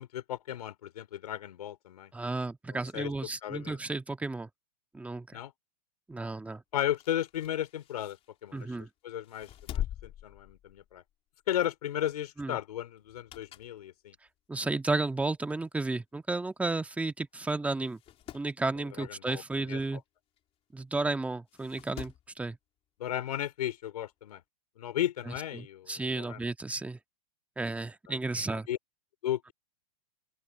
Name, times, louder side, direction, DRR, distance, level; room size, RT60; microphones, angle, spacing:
voice 1, 0.0-2.1 2.7-3.1 3.4-3.8 5.3-5.5 6.7-8.2 8.4-8.7 9.0-11.0 11.5-14.1 19.0-19.8 23.0-24.4 24.8-26.4 28.1-28.2 28.7-28.8 29.2-29.5, left 11 dB, 80° left, 4.1 m, -35 dB
voice 2, 2.1-4.5 4.9-5.4 6.1-6.6 8.5-8.9 12.4-12.6 14.5-18.0 18.3-20.0 20.7-22.6 25.3-27.0 27.6-28.7, right 2 dB, 5° right, 1.7 m, -33 dB
sound 1, 6.9-8.8 9.2-11.1 11.5-11.7 13.0-13.8 14.3-14.4 15.3-15.4 15.6-15.7 15.9-16.0 16.8-17.0 17.3-17.4 17.8-18.5 20.4-20.5 21.5-22.3 23.6-23.7, left 11 dB, 30° left, 3.3 m, -42 dB
open air
hypercardioid pair, 125°, 20 cm